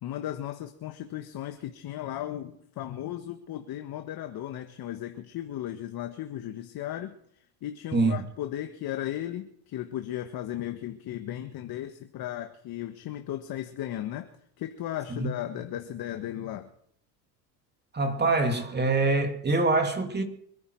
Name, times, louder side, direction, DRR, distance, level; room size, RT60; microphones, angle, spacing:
voice 1, 0.0-14.3 14.6-16.7, left 12 dB, 50° left, 1.5 m, -36 dB
voice 2, 17.9-20.2, right 3 dB, 20° right, 2.6 m, -24 dB
26.0 x 10.5 x 4.7 m
supercardioid pair, 100°, 48 cm